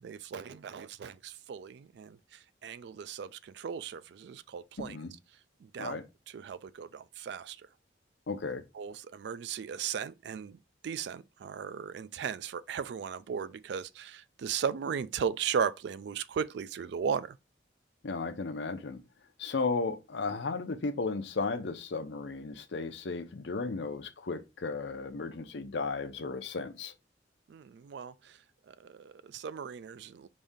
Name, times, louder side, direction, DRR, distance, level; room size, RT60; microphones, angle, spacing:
voice 1, 0.0-5.0 5.6-6.0 6.3-7.6 8.7-10.6 10.8-17.4 27.5-28.4 28.7-30.3, right 7 dB, 65° right, 0.3 m, -36 dB
voice 2, 4.8-5.1 5.8-6.0 8.3-8.6 18.0-19.0 19.4-26.9, left 4 dB, 70° left, 0.6 m, -34 dB
5.2 x 2.7 x 3.5 m
head